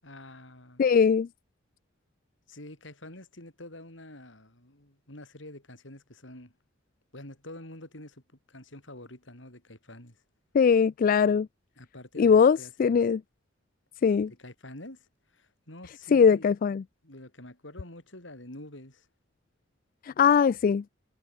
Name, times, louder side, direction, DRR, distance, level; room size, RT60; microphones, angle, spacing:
voice 1, 0.0-0.9 2.5-6.5 7.1-8.2 8.5-10.2 11.8-13.0 14.3-16.5 17.0-19.1, left 1 dB, 70° left, 7.2 m, -47 dB
voice 2, 0.8-1.3 10.5-11.5 12.2-13.2 14.0-14.3 16.1-16.8 20.0-20.8, left 6 dB, 45° left, 0.3 m, -21 dB
head